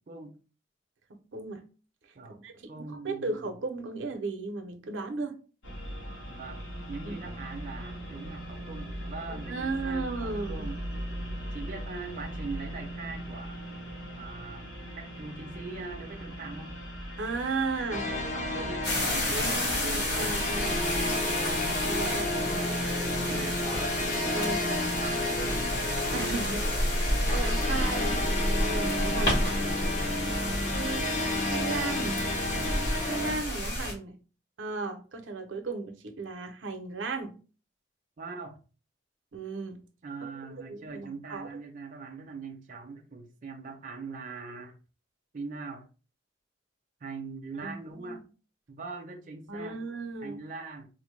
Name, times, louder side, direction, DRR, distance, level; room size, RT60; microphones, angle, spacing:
voice 1, 0.1-0.4 2.1-2.4 2.7-3.5 6.3-6.6 6.9-10.8 11.5-13.9 14.2-14.7 15.0-16.7 18.3-20.1 20.5-20.8 22.1-23.6 24.2-25.8 30.2-30.5 38.2-38.6 40.0-44.8 45.3-45.9 47.0-48.2 48.7-49.8 50.2-50.9, right 4 dB, 45° right, 0.5 m, -42 dB
voice 2, 1.1-1.6 2.3-5.3 7.0-7.3 9.5-10.7 17.2-18.1 19.3-20.8 21.8-22.3 24.3-24.6 25.4-25.5 26.1-27.0 27.3-28.2 28.6-29.5 30.7-31.2 31.5-32.2 33.1-34.1 34.6-37.3 39.3-39.8 40.7-41.5 47.6-48.2 49.5-50.4, right 3 dB, 85° right, 0.6 m, -35 dB
sound 1, 5.6-21.0, equal, 85° left, 1.2 m, -40 dB
sound 2, 17.9-33.4, left 1 dB, 40° left, 0.6 m, -31 dB
sound 3, 18.8-33.9, left 1 dB, 60° left, 1.8 m, -31 dB
4.0 x 2.1 x 3.1 m
head